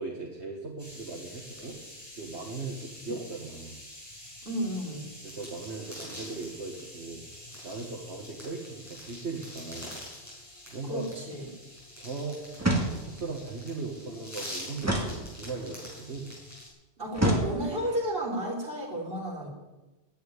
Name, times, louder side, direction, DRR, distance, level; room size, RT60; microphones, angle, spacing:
voice 1, 0.0-1.8 2.1-3.8 5.2-10.0 10.7-11.1 12.0-12.4 12.8-16.3, right 3 dB, 75° right, -1 dB, 2.0 m, -38 dB
sound 1, 0.8-16.7, left 1 dB, 15° left, 6.2 m, -45 dB
voice 2, 4.4-5.1 10.8-11.5 17.0-19.5, equal, 55° right, -2 dB, 4.1 m, -32 dB
sound 2, 12.6-13.3 14.8-15.8 17.1-18.0, right 1 dB, 15° right, 2.0 m, -29 dB
11.5 x 8.8 x 9.8 m, 1.1 s
omnidirectional pair, 1.1 m